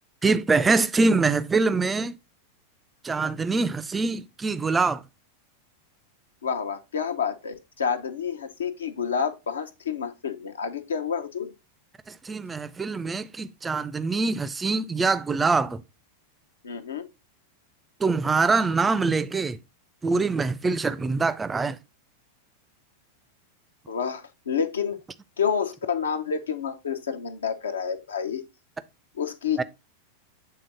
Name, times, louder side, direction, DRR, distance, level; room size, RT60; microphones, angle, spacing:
voice 1, 0.2-2.2 3.0-5.0 12.1-15.8 18.0-19.6 20.0-21.8 29.6-29.7, right 4 dB, 15° right, 0.4 m, -24 dB
voice 2, 6.4-11.5 16.6-17.0 23.9-25.0 25.4-28.4 29.2-29.6, left 7 dB, 70° left, 0.7 m, -29 dB
7.6 x 3.8 x 3.9 m
figure-of-eight pair, 90°, 0 cm